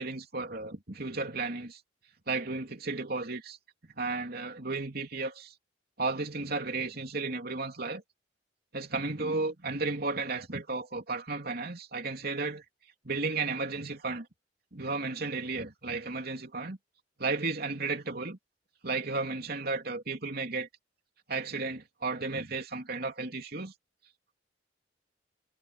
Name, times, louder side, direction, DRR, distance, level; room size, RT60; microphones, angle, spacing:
voice 1, 0.0-1.8 2.3-3.6 4.0-5.5 6.0-8.0 8.7-12.6 13.0-14.3 14.7-16.8 17.2-18.4 18.8-20.7 21.3-23.7, right 3 dB, 55° right, 3.3 m, -33 dB
head